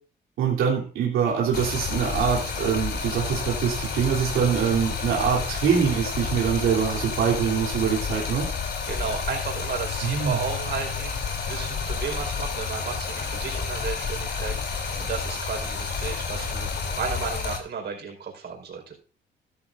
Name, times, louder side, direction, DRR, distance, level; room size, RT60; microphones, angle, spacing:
voice 1, 0.4-8.5 10.0-10.4, right 7 dB, 90° right, -4 dB, 3.4 m, -24 dB
Stream, 1.5-17.6, left 5 dB, 55° left, 3.2 m, -30 dB
voice 2, 8.9-18.9, right 6 dB, 55° right, 1 dB, 4.7 m, -33 dB
13.5 x 13.0 x 2.6 m, 0.38 s
cardioid pair, 90°, 20 cm